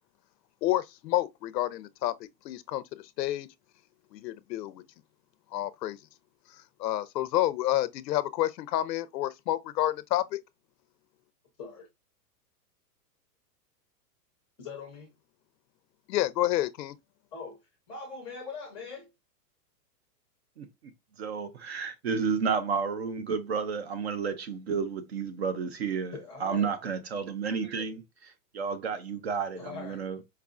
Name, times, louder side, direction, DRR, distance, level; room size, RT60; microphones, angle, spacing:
voice 1, 0.6-2.8 3.2-3.5 4.1-4.8 5.5-6.0 6.5-10.4 16.1-17.0, left 14 dB, 85° left, 0.6 m, -29 dB
voice 2, 14.6-15.1 17.3-17.6 17.9-19.1 26.1-26.7 29.5-30.1, left 4 dB, 10° left, 0.5 m, -41 dB
voice 3, 21.2-26.1 26.4-30.2, right 6 dB, 45° right, 0.4 m, -31 dB
4.6 x 2.4 x 2.4 m
supercardioid pair, 165°, 49 cm